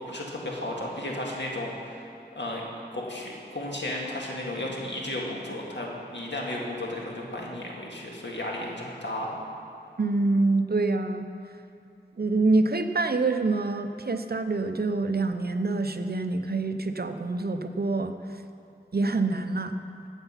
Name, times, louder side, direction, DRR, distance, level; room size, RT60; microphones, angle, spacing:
voice 1, 0.1-2.0 2.4-2.6 2.9-9.3, left 1 dB, 80° left, -2 dB, 1.9 m, -34 dB
voice 2, 10.0-11.3 12.2-18.1 18.9-19.7, right 3 dB, 60° right, 8 dB, 0.6 m, -26 dB
13.0 x 8.0 x 5.7 m, 2.6 s
wide cardioid pair, 45°, 18 cm